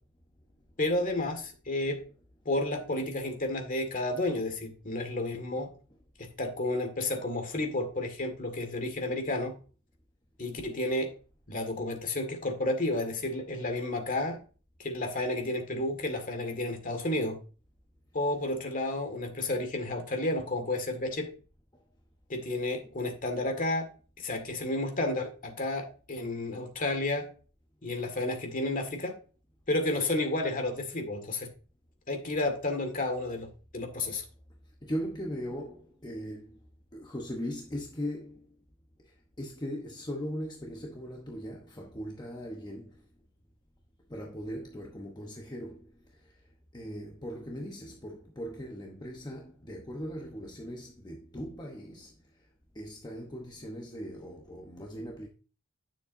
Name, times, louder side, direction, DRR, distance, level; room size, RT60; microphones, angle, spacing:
voice 1, 0.8-2.0 2.5-5.7 6.2-9.5 10.4-11.1 11.5-14.4 14.8-17.4 18.1-21.3 22.3-23.9 24.2-27.3 27.8-29.2 29.7-31.5 32.1-33.5 33.7-34.2, left 2 dB, 40° left, 1.9 m, -31 dB
voice 2, 34.6-36.7 36.9-38.6 39.0-43.1 44.1-52.5 52.7-55.3, equal, 20° left, 0.9 m, -39 dB
9.7 x 7.1 x 2.6 m
head